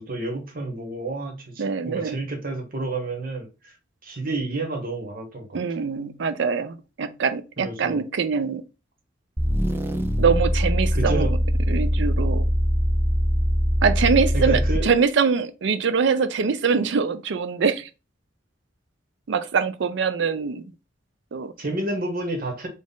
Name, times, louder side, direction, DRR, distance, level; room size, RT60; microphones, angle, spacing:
voice 1, 0.0-3.7 4.0-5.6 7.6-8.0 10.9-11.4 14.3-14.9 21.6-22.7, right 2 dB, 50° right, 1.2 m, -30 dB
voice 2, 1.6-2.2 5.5-8.6 10.2-11.3 11.7-12.5 13.8-17.9 19.3-20.7 21.3-21.5, right 5 dB, 70° right, 0.5 m, -23 dB
sound 1, 9.4-15.0, equal, 10° right, 0.4 m, -22 dB
4.1 x 2.4 x 3.7 m
head